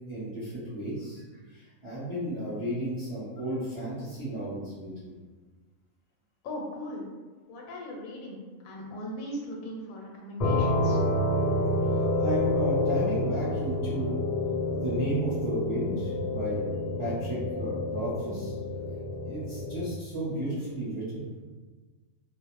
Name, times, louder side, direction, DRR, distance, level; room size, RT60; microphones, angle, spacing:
voice 1, 0.1-1.2 1.8-5.1 11.9-14.2 14.8-16.6 17.0-18.5 19.2-21.3, right 1 dB, 30° right, -10 dB, 0.6 m, -33 dB
voice 2, 6.4-7.0 7.5-11.0, left 1 dB, 80° left, 0 dB, 1.0 m, -38 dB
sound 1, 10.4-19.9, left 1 dB, 50° left, 0.5 m, -28 dB
2.4 x 2.1 x 3.0 m, 1.4 s
omnidirectional pair, 1.4 m